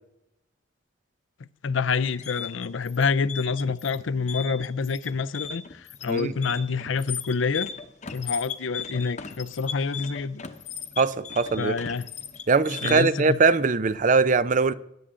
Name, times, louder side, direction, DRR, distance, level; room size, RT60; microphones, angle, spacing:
voice 1, 1.6-7.7 8.1-10.4 11.6-12.1 12.8-13.4, left 5 dB, 75° left, 0.5 m, -27 dB
sound 1, 1.9-13.3, left 7 dB, 35° left, 0.9 m, -37 dB
voice 2, 11.0-11.7 12.5-14.7, right 4 dB, 40° right, 0.5 m, -21 dB
21.0 x 10.0 x 3.8 m
head